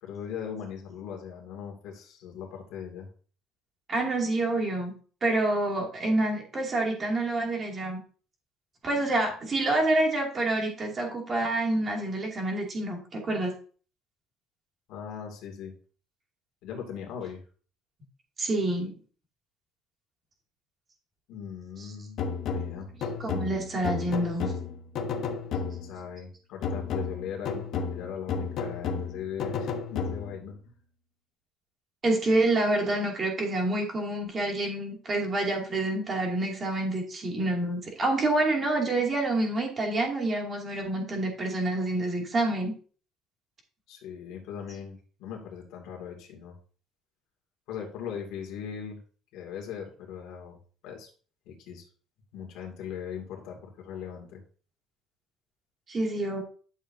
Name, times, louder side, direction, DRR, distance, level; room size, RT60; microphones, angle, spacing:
voice 1, 0.0-3.1 14.9-15.7 16.6-17.4 21.3-22.2 22.5-22.9 25.6-30.6 43.9-46.6 47.7-49.0 49.3-50.6 50.8-51.1 51.5-51.9 52.3-54.4, left 7 dB, 65° left, 1 dB, 2.5 m, -39 dB
voice 2, 3.9-4.9 5.2-8.0 8.8-13.5 18.4-19.0 21.8-21.9 23.2-24.5 32.0-42.7 55.9-56.4, right 2 dB, 25° right, 0 dB, 2.5 m, -27 dB
sound 1, 22.2-26.1 26.6-30.5, left 5 dB, 45° left, 1.2 m, -33 dB
11.5 x 7.2 x 2.8 m, 0.41 s
cardioid pair, 175°, 0 cm